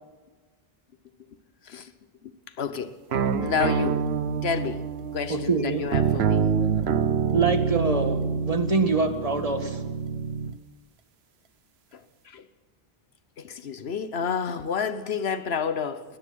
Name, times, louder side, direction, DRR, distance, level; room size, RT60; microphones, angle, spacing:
voice 1, 2.6-2.9 3.4-4.0 4.4-4.8 5.1-5.5 5.8-6.4 12.3-12.4 13.6-16.0, left 6 dB, 80° left, 1.3 m, -29 dB
sound 1, 3.1-10.6, right 6 dB, 85° right, 1.2 m, -26 dB
voice 2, 5.3-5.9 7.3-9.8, right 4 dB, 35° right, 1.8 m, -25 dB
21.0 x 20.0 x 6.3 m
omnidirectional pair, 1.0 m